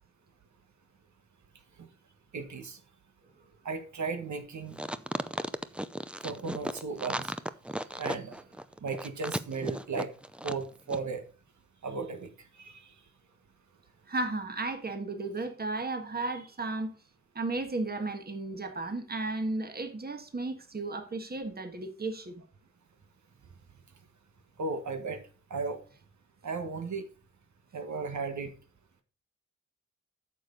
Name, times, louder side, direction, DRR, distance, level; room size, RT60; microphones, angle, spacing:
voice 1, 2.3-2.8 3.6-4.8 6.2-7.3 8.0-8.3 8.8-10.1 10.4-11.2 11.8-12.3 12.6-12.9 24.6-25.2 25.5-25.8 26.4-27.1 27.7-28.5, right 4 dB, 75° right, 6 dB, 1.5 m, -35 dB
sound 1, 4.7-10.6 10.9-11.0, right 1 dB, 5° right, 0.5 m, -35 dB
voice 2, 14.1-16.9 17.3-22.4, right 2 dB, 35° right, 6 dB, 1.5 m, -34 dB
9.2 x 6.8 x 3.9 m, 0.36 s
wide cardioid pair, 105°, 29 cm